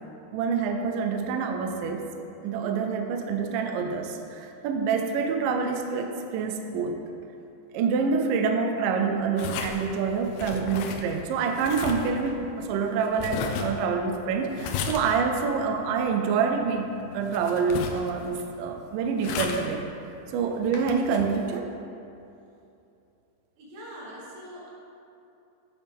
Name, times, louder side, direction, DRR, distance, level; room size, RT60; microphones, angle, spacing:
voice 1, 0.3-2.1 2.4-7.0 7.7-19.9 20.3-21.7, right 5 dB, 85° right, 4 dB, 1.9 m, -27 dB
sound 1, 9.4-21.6, left 6 dB, 85° left, 2.7 m, -36 dB
voice 2, 23.6-24.7, equal, 70° right, -5 dB, 3.2 m, -42 dB
8.4 x 7.3 x 3.5 m, 2.7 s
omnidirectional pair, 4.7 m